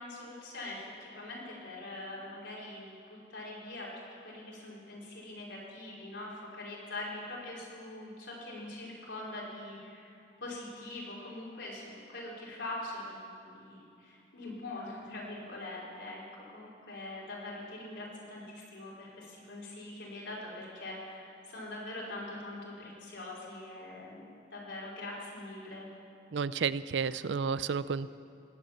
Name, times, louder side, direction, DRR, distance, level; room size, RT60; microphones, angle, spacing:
voice 1, 0.0-3.9 4.2-24.2 24.5-25.9, left 2 dB, 80° left, -5 dB, 4.5 m, -43 dB
voice 2, 26.3-28.1, right 6 dB, 75° right, 16 dB, 0.4 m, -31 dB
18.5 x 8.0 x 8.7 m, 2.6 s
head